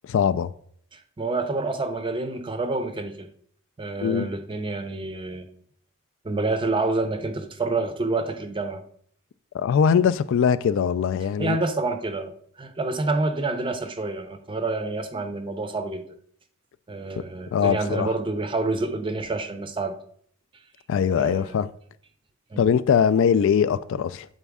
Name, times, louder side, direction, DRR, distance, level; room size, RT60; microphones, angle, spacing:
voice 1, 0.0-0.5 4.0-4.3 9.5-11.6 17.5-18.1 20.9-21.7 22.6-24.3, left 7 dB, 60° left, 0.3 m, -21 dB
voice 2, 0.9-3.3 3.8-5.5 6.2-8.8 11.4-12.3 12.6-16.0 16.9-20.0 21.2-21.6 22.5-22.6, right 3 dB, 25° right, 0.5 m, -28 dB
8.1 x 4.1 x 3.5 m
head